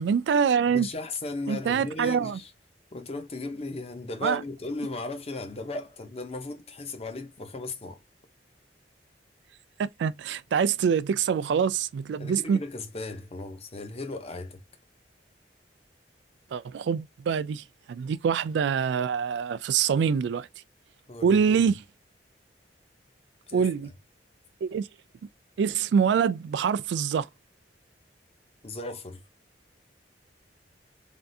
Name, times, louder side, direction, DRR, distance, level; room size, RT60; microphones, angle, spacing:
voice 1, 0.0-0.9 1.5-2.4 4.2-4.4 9.8-12.6 16.5-20.5 21.2-21.8 23.5-23.9 24.6-24.9 25.6-27.3, right 7 dB, 75° right, 0.3 m, -25 dB
voice 2, 0.7-2.5 2.9-8.0 12.2-14.6 21.1-21.7 23.5-23.7 28.6-29.2, left 2 dB, 35° left, 0.6 m, -36 dB
3.5 x 2.4 x 2.6 m
head